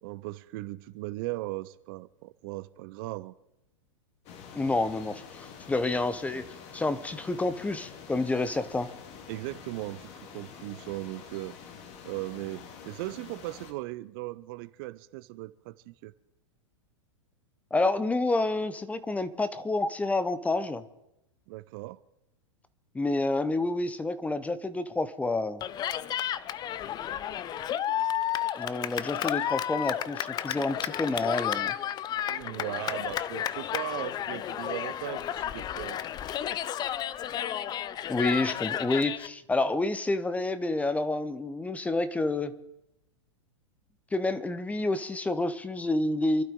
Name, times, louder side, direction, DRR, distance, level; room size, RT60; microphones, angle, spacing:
voice 1, 0.0-3.3 9.3-11.6 12.0-16.1 21.5-22.0 32.3-36.0, right 19 dB, 45° right, 0.6 m, -38 dB
sound 1, 4.3-13.7, left 7 dB, 40° left, 2.3 m, -47 dB
voice 2, 4.5-8.9 17.7-20.8 22.9-25.6 28.6-31.8 38.1-42.5 44.1-46.4, left 2 dB, 10° left, 0.9 m, -29 dB
Cheering, 25.6-39.3, left 10 dB, 25° left, 0.6 m, -32 dB
27.5 x 12.0 x 3.8 m
hypercardioid pair, 105°, 16 cm